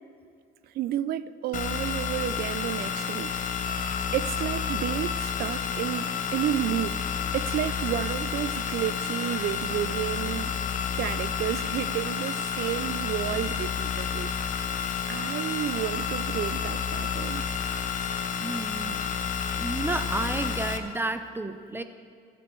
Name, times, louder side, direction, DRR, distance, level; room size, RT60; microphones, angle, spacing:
voice 1, 0.7-3.4 4.1-7.1 7.3-10.6 11.0-14.3 15.1-17.4, right 12 dB, 65° right, 0.5 m, -31 dB
sound 1, 1.5-20.8, left 7 dB, 50° left, 1.0 m, -30 dB
voice 2, 18.4-21.8, right 2 dB, 15° right, 0.7 m, -32 dB
25.0 x 8.5 x 4.6 m
cardioid pair, 110°, 17 cm